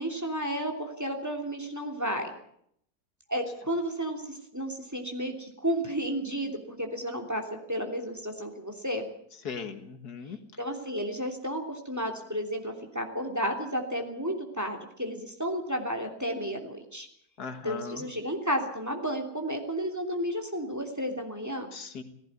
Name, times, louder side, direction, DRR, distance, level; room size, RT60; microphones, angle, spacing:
voice 1, 0.0-2.3 3.3-7.4 7.7-9.1 10.6-17.1 17.6-21.7, equal, 10° right, 3 dB, 3.1 m, -32 dB
voice 2, 9.5-10.4 17.4-18.0 21.7-22.0, left 6 dB, 80° left, 9 dB, 2.2 m, -38 dB
17.5 x 16.0 x 9.4 m, 0.68 s
omnidirectional pair, 1.6 m